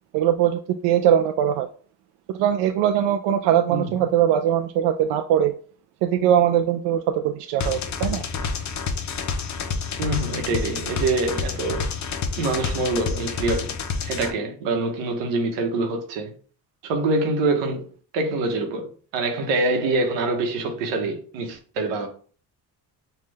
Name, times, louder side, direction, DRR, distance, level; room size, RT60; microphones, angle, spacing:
voice 1, 0.1-1.7 2.3-5.5 6.0-8.2, right 10 dB, 75° right, 0.5 m, -21 dB
sound 1, 7.6-14.3, left 5 dB, 40° left, 0.7 m, -28 dB
voice 2, 10.0-11.9 12.4-13.7 14.1-16.3 16.8-17.9 18.1-22.1, right 2 dB, 90° right, 1.1 m, -25 dB
5.6 x 2.4 x 3.2 m
supercardioid pair, 85°, 43 cm